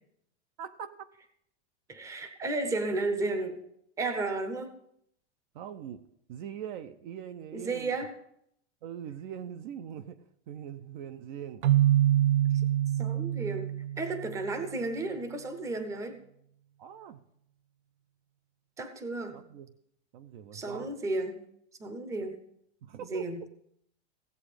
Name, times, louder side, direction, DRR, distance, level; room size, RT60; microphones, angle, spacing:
voice 1, 0.6-1.0 5.5-8.0 8.8-11.7 16.8-17.2 19.3-19.7 20.1-20.9 22.8-23.3, right 9 dB, 45° right, 11 dB, 0.7 m, -42 dB
voice 2, 1.9-3.6 4.0-4.8 7.5-8.1 13.0-13.7 14.0-16.2 18.8-19.4 20.5-21.4 21.8-22.4 23.0-23.4, right 2 dB, 10° right, 8 dB, 0.8 m, -33 dB
Keyboard (musical), 11.6-14.5, right 12 dB, 80° right, 0.7 m, -25 dB
16.0 x 8.0 x 5.0 m, 0.73 s
supercardioid pair, 160°, 35 cm